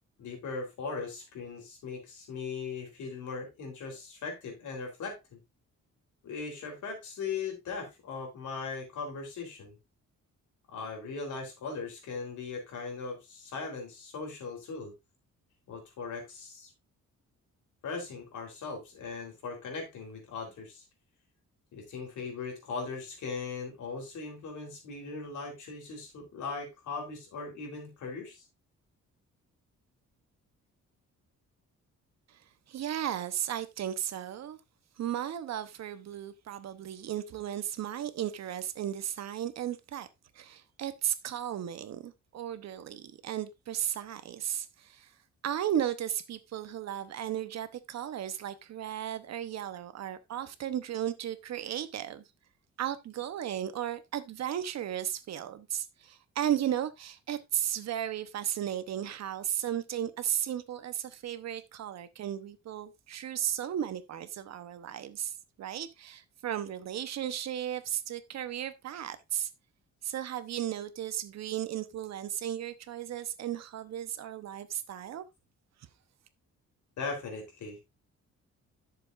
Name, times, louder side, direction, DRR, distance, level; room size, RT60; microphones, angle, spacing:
voice 1, 0.2-5.4 6.2-9.8 10.7-14.9 15.7-16.7 17.8-20.8 21.7-28.4 77.0-77.8, left 4 dB, 80° left, 3.8 m, -39 dB
voice 2, 32.7-34.6 35.0-40.1 40.3-45.1 45.4-52.2 52.8-69.5 70.0-75.2, right 10 dB, 65° right, 0.9 m, -35 dB
11.0 x 7.0 x 2.5 m
wide cardioid pair, 180°, 30 cm